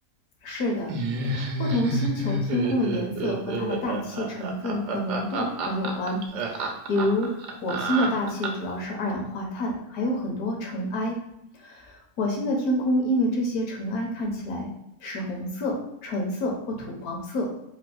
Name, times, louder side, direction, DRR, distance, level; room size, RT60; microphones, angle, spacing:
voice 1, 0.4-0.9 1.2-7.3 7.6-11.2 11.5-14.7 15.0-15.8 16.0-17.5, left 1 dB, 70° left, 0 dB, 1.1 m, -28 dB
Laughter, 0.9-8.7, right 2 dB, 80° right, 1.1 m, -29 dB
3.9 x 2.6 x 2.2 m, 0.82 s
omnidirectional pair, 1.8 m